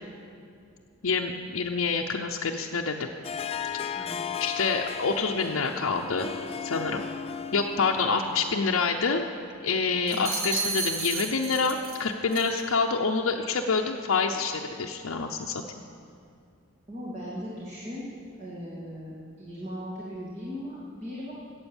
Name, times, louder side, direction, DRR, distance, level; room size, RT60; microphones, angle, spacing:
voice 1, 1.0-3.1 3.7-4.1 4.4-6.3 6.6-7.0 7.5-9.3 9.6-15.6, left 4 dB, 75° left, 0 dB, 0.7 m, -27 dB
Harp, 3.2-8.7, left 7 dB, 30° left, 0.4 m, -36 dB
sound 1, 10.1-12.0 12.3-12.6, right 4 dB, 90° right, 1.8 m, -32 dB
voice 2, 16.9-18.0 18.4-21.3, equal, 30° right, -7 dB, 2.3 m, -38 dB
15.0 x 8.8 x 7.1 m, 2.4 s
head